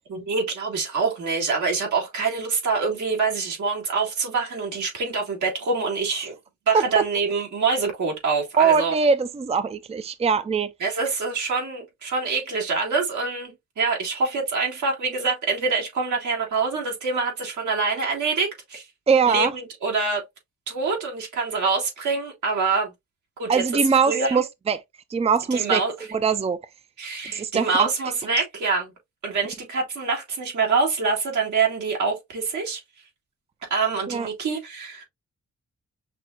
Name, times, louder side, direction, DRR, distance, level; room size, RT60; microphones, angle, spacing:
voice 1, 0.1-6.4 6.7-9.0 10.8-18.9 19.3-20.2 20.7-22.9 23.4-24.4 25.5-26.1 27.0-28.9 29.2-32.8 33.7-35.0, right 4 dB, 85° right, 2.1 m, -25 dB
voice 2, 8.6-10.7 19.1-19.5 23.5-24.8 25.1-25.8 26.1-26.6 27.3-27.9 34.1-34.3, right 5 dB, 20° right, 0.5 m, -21 dB
5.9 x 2.9 x 2.4 m
cardioid pair, 55°, 29 cm